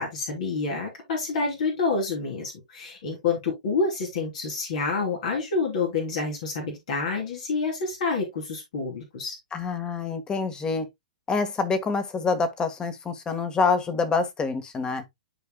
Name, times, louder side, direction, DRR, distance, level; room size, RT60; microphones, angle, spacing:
voice 1, 0.0-9.4, left 4 dB, 60° left, 3.0 m, -28 dB
voice 2, 9.5-10.9 11.3-15.0, left 4 dB, 20° left, 1.5 m, -26 dB
12.0 x 4.9 x 2.2 m
hypercardioid pair, 120°, 4 cm